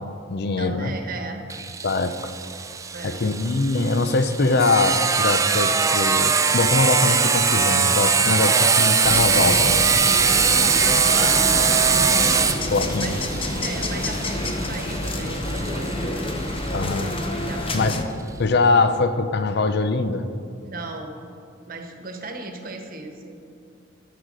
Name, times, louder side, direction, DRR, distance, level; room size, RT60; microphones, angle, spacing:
voice 1, 0.0-0.9 1.8-2.3 3.0-10.0 12.7-13.1 16.7-17.1 17.7-18.0 18.4-20.3, left 3 dB, 55° left, 11 dB, 0.6 m, -22 dB
voice 2, 0.6-1.4 2.9-3.2 8.2-8.5 10.8-12.6 13.0-13.2 13.6-16.3 17.4-17.9 20.6-21.3 21.7-23.4, right 2 dB, 45° right, 4 dB, 1.2 m, -35 dB
Sawing, 1.5-16.9, right 5 dB, 15° right, 0.4 m, -21 dB
sound 1, 9.0-18.0, left 1 dB, 30° left, 0.8 m, -28 dB
12.0 x 6.7 x 6.1 m, 2.5 s
head